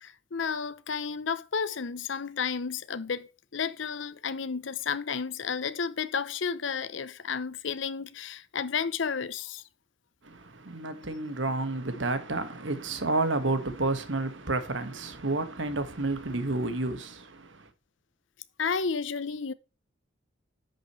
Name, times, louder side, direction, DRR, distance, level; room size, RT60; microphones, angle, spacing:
voice 1, 0.0-9.6 18.6-19.5, left 6 dB, 70° left, 0.7 m, -32 dB
voice 2, 10.2-17.7, right 2 dB, 70° right, 1.6 m, -30 dB
10.5 x 6.3 x 3.1 m
head